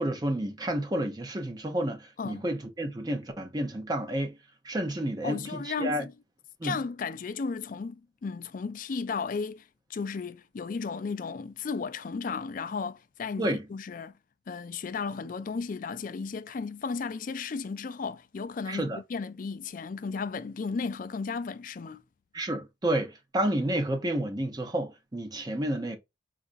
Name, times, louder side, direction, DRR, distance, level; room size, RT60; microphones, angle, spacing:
voice 1, 0.0-4.3 4.6-5.4 5.6-6.0 6.6-6.8 13.4-13.6 18.7-19.0 22.3-26.0, right 1 dB, 20° right, 0.5 m, -30 dB
voice 2, 5.2-6.1 6.6-9.6 9.9-14.1 14.5-22.0, left 5 dB, 45° left, 0.3 m, -34 dB
4.1 x 2.4 x 2.4 m
head